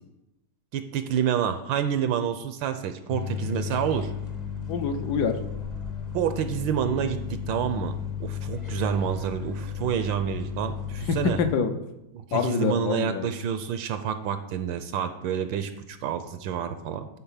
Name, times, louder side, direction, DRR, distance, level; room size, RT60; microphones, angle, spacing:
voice 1, 0.7-4.1 6.1-7.2 7.5-7.9 8.2-11.4 12.1-17.1, right 8 dB, 75° right, 9 dB, 1.3 m, -28 dB
sound 1, 3.1-11.5, left 8 dB, 35° left, 0.6 m, -34 dB
voice 2, 4.7-5.4 11.1-11.8 12.3-13.3, left 6 dB, 70° left, 8 dB, 1.1 m, -26 dB
10.0 x 4.0 x 5.6 m, 0.91 s
omnidirectional pair, 2.2 m